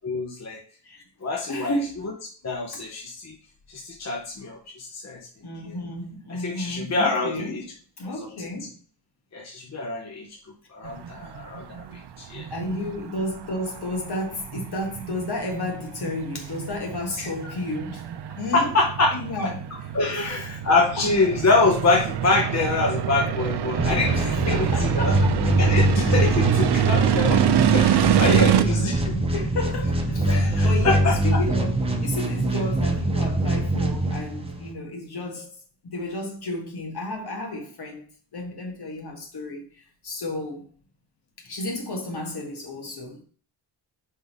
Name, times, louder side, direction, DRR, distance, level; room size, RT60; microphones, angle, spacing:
voice 1, 0.0-0.6 1.2-1.7 2.4-3.4 3.7-5.2 5.6-5.8 6.3-7.6 9.3-10.4 10.7-12.5 17.2-17.3 18.5-19.5 19.9-25.1 25.6-27.4 27.7-29.0 30.3-31.4, left 3 dB, 35° left, 0.9 m, -25 dB
voice 2, 1.5-2.1 2.7-2.8 5.4-7.6 8.0-8.7 12.5-18.7 19.1-19.6 20.0-21.1 24.1-25.4 27.7-35.5 35.8-38.0 38.3-40.7 41.4-43.2, left 2 dB, 60° left, 1.8 m, -32 dB
sound 1, 10.8-28.6, right 10 dB, 60° right, 0.6 m, -26 dB
sound 2, 23.8-34.7, right 1 dB, 15° right, 0.8 m, -23 dB
5.4 x 3.7 x 5.4 m
wide cardioid pair, 170°, 45 cm